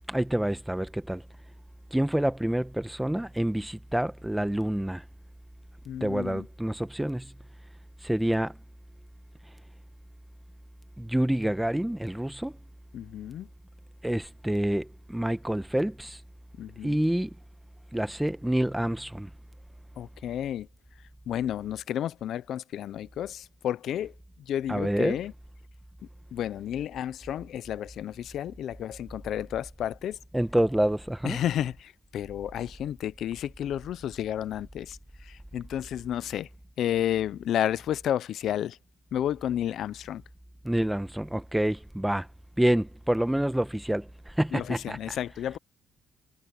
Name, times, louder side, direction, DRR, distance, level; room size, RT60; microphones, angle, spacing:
voice 1, 0.1-1.2 1.9-5.0 6.0-7.3 8.0-8.5 11.0-12.5 14.0-16.2 16.8-17.3 17.9-19.3 24.7-25.2 30.3-31.4 40.6-42.3 42.6-45.2, right 1 dB, 5° right, 1.0 m, -27 dB
voice 2, 5.9-6.4 12.9-13.5 16.6-17.0 20.0-20.7 21.3-24.1 24.5-25.3 26.3-30.2 31.2-35.0 35.2-36.5 36.8-38.8 39.1-40.2 44.5-45.6, left 11 dB, 60° left, 0.5 m, -31 dB
cardioid pair, 135°, 0 cm